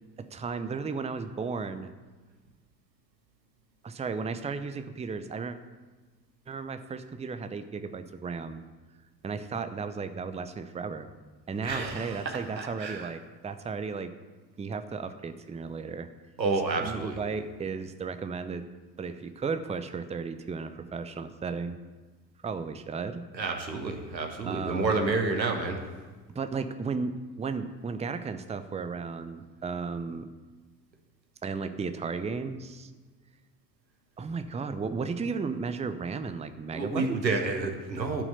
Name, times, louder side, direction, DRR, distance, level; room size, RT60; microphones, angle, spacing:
voice 1, 0.2-1.9 3.8-5.6 6.5-8.6 9.2-11.1 11.5-14.1 14.6-16.1 16.8-18.7 19.0-21.8 22.4-23.2 24.4-25.0 26.3-30.3 31.4-32.9 34.2-37.2, right 5 dB, 15° right, 9 dB, 0.7 m, -34 dB
voice 2, 11.6-13.1 16.4-17.2 23.3-25.8 36.7-38.2, right 3 dB, 85° right, 4 dB, 1.2 m, -30 dB
11.5 x 6.1 x 8.1 m, 1.3 s
figure-of-eight pair, 60°, 50 cm